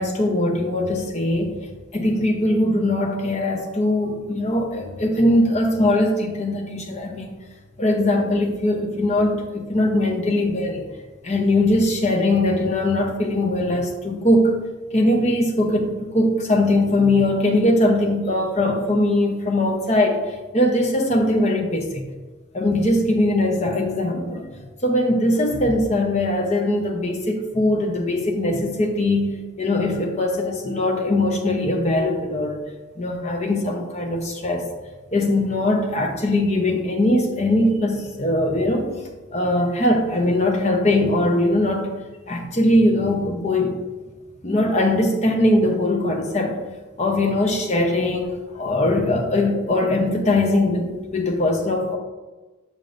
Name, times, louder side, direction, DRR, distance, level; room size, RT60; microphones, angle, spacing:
voice 1, 0.0-1.6 1.9-7.3 7.8-10.8 11.2-14.5 14.9-20.2 20.5-22.0 22.5-24.6 24.8-32.6 33.0-34.7 35.1-39.0 39.3-41.9 42.3-43.8 44.4-46.6 47.0-52.0, left 1 dB, 35° left, 2 dB, 0.7 m, -21 dB
6.9 x 6.2 x 2.6 m, 1.2 s
head